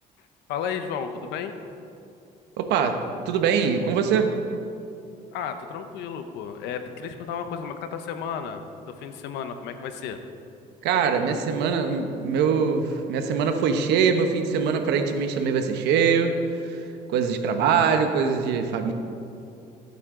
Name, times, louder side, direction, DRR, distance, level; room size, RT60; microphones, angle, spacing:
voice 1, 0.5-1.5 5.3-10.2, left 7 dB, 90° left, 8 dB, 0.9 m, -33 dB
voice 2, 2.6-3.0 3.3-4.3 10.8-16.3 16.6-16.8 17.1-18.9, right 6 dB, 85° right, 6 dB, 1.1 m, -23 dB
16.5 x 8.8 x 3.8 m, 2.6 s
cardioid pair, 110°, 17 cm